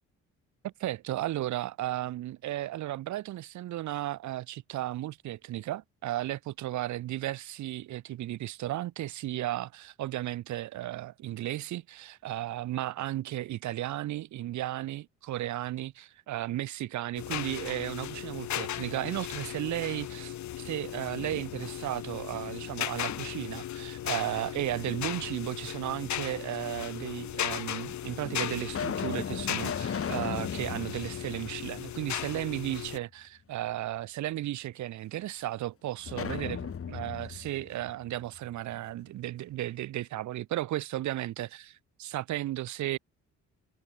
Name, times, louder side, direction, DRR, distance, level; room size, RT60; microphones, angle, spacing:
voice 1, 0.6-41.7 42.0-43.0, right 14 dB, 70° right, 0.8 m, -34 dB
sound 1, 17.2-33.0, left 12 dB, 70° left, 1.7 m, -37 dB
sound 2, 20.9-21.9 22.3-23.6 24.9-25.7 26.5-26.6 27.5-27.6 28.2-32.3 32.6-32.7 36.0-38.8, left 7 dB, 50° left, 5.1 m, -38 dB
cardioid pair, 90°, 30 cm